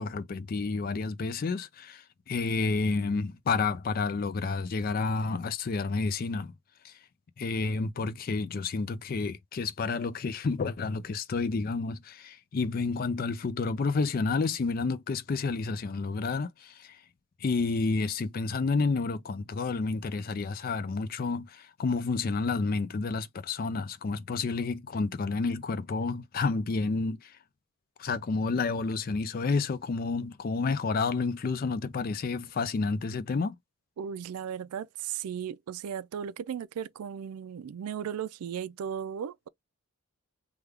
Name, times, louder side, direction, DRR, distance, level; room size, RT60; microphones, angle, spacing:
voice 1, 0.0-6.5 6.8-6.9 7.4-17.0 17.4-27.3 28.0-33.5, left 4 dB, 40° left, 0.3 m, -30 dB
voice 2, 34.0-39.5, right 8 dB, 90° right, 0.4 m, -36 dB
3.5 x 2.2 x 3.2 m
head